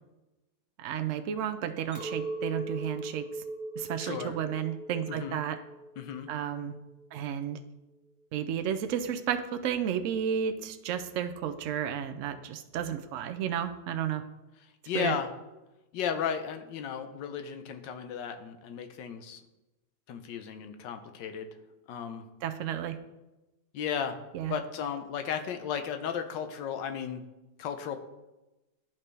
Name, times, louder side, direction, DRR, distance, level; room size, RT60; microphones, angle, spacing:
voice 1, 0.8-3.2 3.8-5.6 6.3-6.7 7.1-7.6 8.3-14.2 14.9-15.1 22.4-23.0 24.3-24.6, right 9 dB, 80° right, 8 dB, 0.7 m, -32 dB
Chink clink, 1.9-7.3, right 2 dB, 5° right, 2.8 m, -40 dB
voice 2, 4.0-4.4 5.1-5.4 6.0-6.3 14.6-15.3 15.9-19.4 20.1-21.5 21.9-22.2 23.7-24.2 24.5-27.2 27.6-28.0, left 7 dB, 85° left, 7 dB, 1.4 m, -34 dB
12.0 x 4.3 x 3.3 m, 1.0 s
omnidirectional pair, 1.9 m